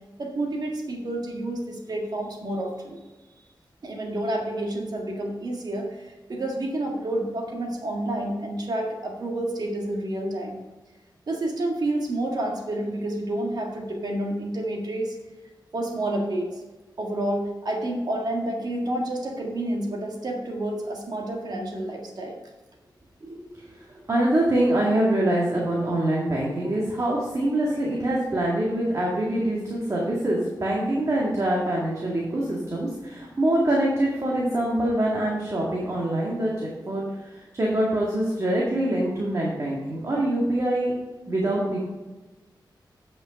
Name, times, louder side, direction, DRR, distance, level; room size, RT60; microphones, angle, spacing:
voice 1, 0.2-3.0 3.8-10.6 11.3-15.2 15.7-16.6 17.0-22.3, right 1 dB, 60° right, 0 dB, 1.7 m, -29 dB
voice 2, 24.1-40.9 41.3-41.8, right 1 dB, 40° right, -4 dB, 1.9 m, -24 dB
9.1 x 5.5 x 5.2 m, 1.2 s
wide cardioid pair, 100°, 8 cm